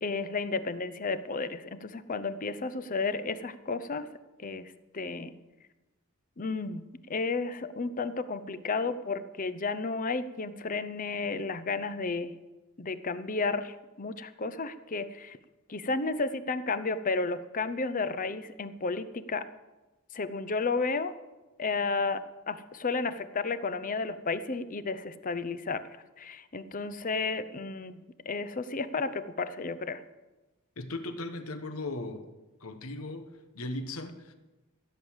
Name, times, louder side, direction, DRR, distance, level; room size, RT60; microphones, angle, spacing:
voice 1, 0.0-4.1 4.4-5.3 6.4-12.4 12.8-15.4 15.7-19.5 20.1-21.1 21.6-25.8 26.2-30.0, left 4 dB, 40° left, 13 dB, 0.7 m, -32 dB
voice 2, 30.8-32.3 32.6-34.3, left 2 dB, 75° left, 9 dB, 1.2 m, -37 dB
15.5 x 7.9 x 7.3 m, 1.1 s
head